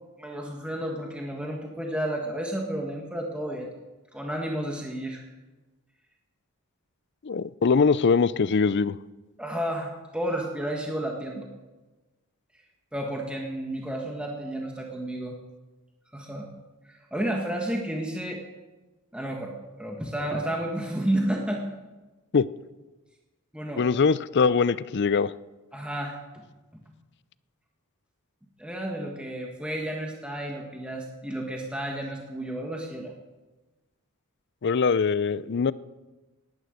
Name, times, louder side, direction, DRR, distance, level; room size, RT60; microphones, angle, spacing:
voice 1, 0.2-3.7 4.1-5.3 9.4-11.5 12.9-15.3 16.1-16.5 16.8-18.4 19.1-21.6 23.5-23.8 25.7-26.2 28.6-33.1, right 1 dB, 5° right, 0 dB, 1.6 m, -31 dB
voice 2, 7.2-9.0 22.3-22.4 23.8-25.3 34.6-35.7, left 5 dB, 50° left, 18 dB, 0.5 m, -22 dB
19.0 x 11.0 x 6.6 m, 1.2 s
head